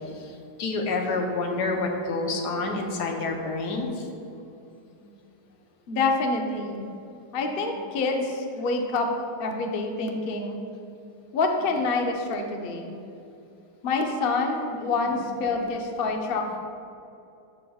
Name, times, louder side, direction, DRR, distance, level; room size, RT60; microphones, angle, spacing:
voice 1, 0.6-3.9, left 3 dB, 75° left, 2 dB, 1.4 m, -28 dB
voice 2, 5.9-6.9 7.3-9.1 9.4-10.6 11.3-12.9 13.8-16.6, left 3 dB, 60° left, 2 dB, 0.6 m, -27 dB
13.0 x 4.9 x 2.3 m, 2.7 s
omnidirectional pair, 1.8 m